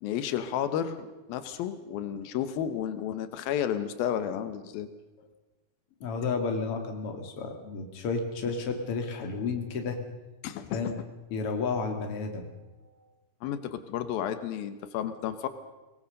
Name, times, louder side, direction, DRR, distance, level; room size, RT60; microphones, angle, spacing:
voice 1, 0.0-4.9 8.4-8.5 10.4-11.1 13.4-15.5, left 9 dB, 85° left, 11 dB, 2.9 m, -32 dB
voice 2, 6.0-10.0 10.7-10.9 11.3-12.5, left 4 dB, 45° left, 4 dB, 2.9 m, -32 dB
24.0 x 19.0 x 6.6 m, 1.1 s
omnidirectional pair, 4.2 m